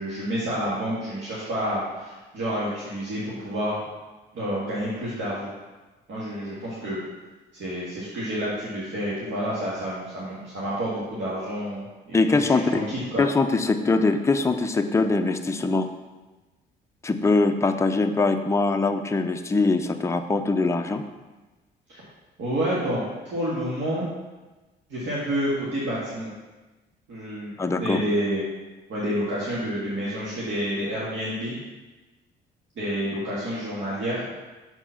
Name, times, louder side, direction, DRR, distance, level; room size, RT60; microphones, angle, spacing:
voice 1, 0.0-3.8 4.3-5.5 6.1-7.0 7.5-13.2 21.9-22.0 22.4-24.1 24.9-26.3 27.1-28.4 28.9-31.6 32.8-34.2, equal, 70° right, -8 dB, 2.0 m, -29 dB
voice 2, 12.1-12.9 13.2-15.9 17.0-21.0 27.6-28.0, left 3 dB, 15° left, 6 dB, 0.5 m, -22 dB
7.1 x 4.4 x 5.7 m, 1.2 s
cardioid pair, 90°, 20 cm